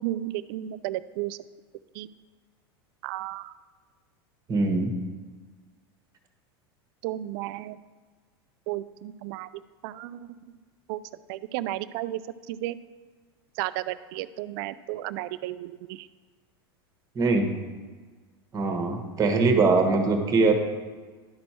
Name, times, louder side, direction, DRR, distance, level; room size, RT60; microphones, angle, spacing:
voice 1, 0.0-1.4 1.9-2.1 3.0-3.5 7.0-7.8 8.7-9.5 9.8-10.3 10.9-11.0 11.3-12.2 12.5-12.8 13.6-16.1, right 15 dB, 60° right, 15 dB, 0.4 m, -33 dB
voice 2, 4.5-4.9 17.1-17.6 18.5-20.5, right 3 dB, 25° right, 5 dB, 1.3 m, -22 dB
11.0 x 4.3 x 4.4 m, 1.4 s
hypercardioid pair, 100°, 13 cm